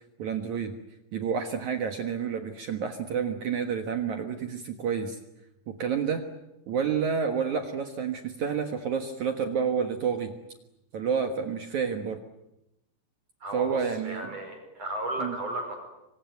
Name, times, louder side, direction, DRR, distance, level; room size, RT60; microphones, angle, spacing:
voice 1, 0.2-0.7 1.1-5.2 5.7-6.2 6.7-10.3 10.9-12.2 13.5-14.3 15.2-15.3, right 6 dB, 65° right, 6 dB, 1.9 m, -29 dB
voice 2, 13.4-15.8, right 1 dB, 35° right, 5 dB, 6.1 m, -34 dB
26.0 x 24.0 x 9.3 m, 0.90 s
omnidirectional pair, 5.6 m